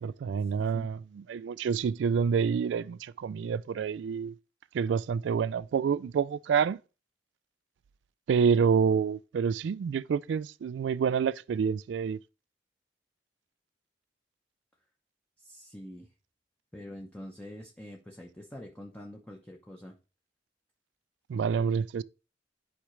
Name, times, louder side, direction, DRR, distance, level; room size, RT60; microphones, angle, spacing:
voice 1, 0.0-4.3 4.7-6.8 8.3-12.2 21.3-22.0, right 6 dB, 85° right, 0.3 m, -28 dB
voice 2, 0.6-0.9 15.4-16.1 16.7-19.9, left 1 dB, 10° left, 0.9 m, -45 dB
11.5 x 4.8 x 3.2 m
head